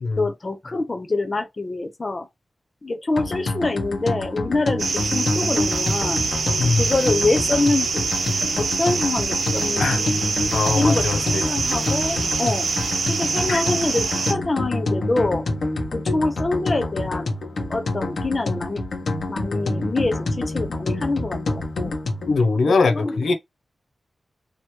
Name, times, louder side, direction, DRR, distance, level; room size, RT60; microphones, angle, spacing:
voice 1, 0.2-2.3 2.8-6.2 6.8-8.1 8.6-10.1 10.6-12.7 13.1-15.5 15.9-17.3 17.7-18.8 19.3-22.0 22.6-23.3, left 2 dB, 30° left, 0.7 m, -25 dB
sound 1, 3.2-22.4, left 2 dB, 65° left, 1.1 m, -27 dB
sound 2, 4.8-14.3, right 4 dB, 70° right, 0.8 m, -25 dB
voice 2, 10.5-11.4 13.5-13.6 22.3-23.3, left 4 dB, 85° left, 0.6 m, -21 dB
3.1 x 2.9 x 4.4 m
wide cardioid pair, 170°, 0 cm